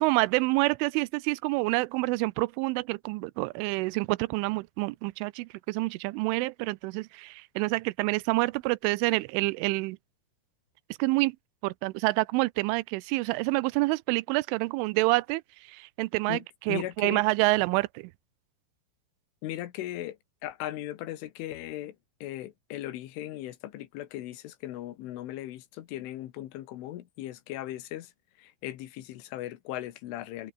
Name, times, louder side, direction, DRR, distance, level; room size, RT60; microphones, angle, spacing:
voice 1, 0.0-10.0 11.0-11.4 11.6-15.4 15.7-16.4 16.7-18.1, right 23 dB, 85° right, 3.0 m, -27 dB
voice 2, 16.3-17.2 19.4-22.0 22.2-28.1 28.4-30.5, left 14 dB, 80° left, 4.0 m, -38 dB
omnidirectional pair, 5.6 m